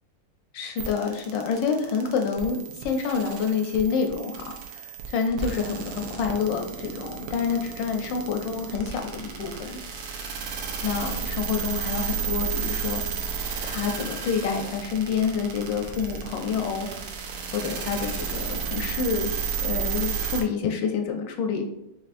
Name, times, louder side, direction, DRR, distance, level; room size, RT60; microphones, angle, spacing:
voice 1, 0.5-9.8 10.1-10.3 10.8-13.0 13.6-16.9 17.5-19.3 19.6-21.7, left 6 dB, 75° left, 3 dB, 1.0 m, -28 dB
sound 1, 0.8-20.4, right 6 dB, 90° right, 1.5 m, -33 dB
5.8 x 2.9 x 2.5 m, 0.85 s
omnidirectional pair, 2.4 m